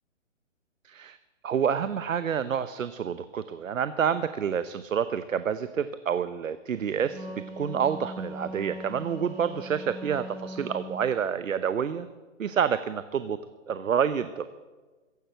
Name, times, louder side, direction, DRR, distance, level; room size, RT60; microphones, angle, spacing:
voice 1, 0.8-1.2 1.4-7.3 7.6-12.1 12.4-13.4 13.7-14.5, right 7 dB, 80° right, 13 dB, 0.9 m, -28 dB
Wind instrument woodwind instrument, 6.9-11.1, equal, 30° right, 6.3 m, -40 dB
15.5 x 10.5 x 7.8 m, 1.3 s
hypercardioid pair, 155°, 39 cm